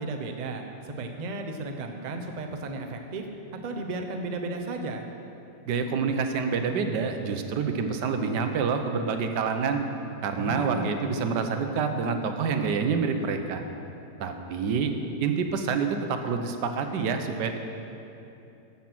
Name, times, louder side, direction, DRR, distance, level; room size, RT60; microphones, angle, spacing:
voice 1, 0.0-3.3 3.6-5.0 10.4-10.9, right 2 dB, 40° right, 4 dB, 0.6 m, -34 dB
voice 2, 5.7-9.8 10.2-13.6 14.2-14.9 15.2-17.6, right 5 dB, 85° right, 6 dB, 1.4 m, -27 dB
13.0 x 7.3 x 6.0 m, 2.8 s
omnidirectional pair, 1.8 m